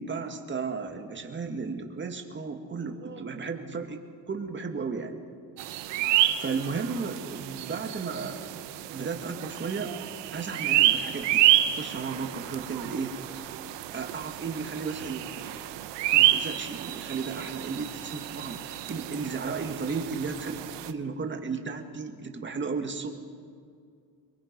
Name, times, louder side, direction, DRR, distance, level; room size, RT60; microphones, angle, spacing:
voice 1, 0.0-4.0 4.3-5.2 6.4-8.5 8.9-10.0 10.3-13.1 13.9-15.4 16.1-20.5 20.9-23.1, right 4 dB, 25° right, 5 dB, 2.0 m, -34 dB
sound 1, 5.6-20.9, right 13 dB, 85° right, 1.1 m, -29 dB
23.0 x 23.0 x 5.4 m, 2.2 s
cardioid pair, 120°, 41 cm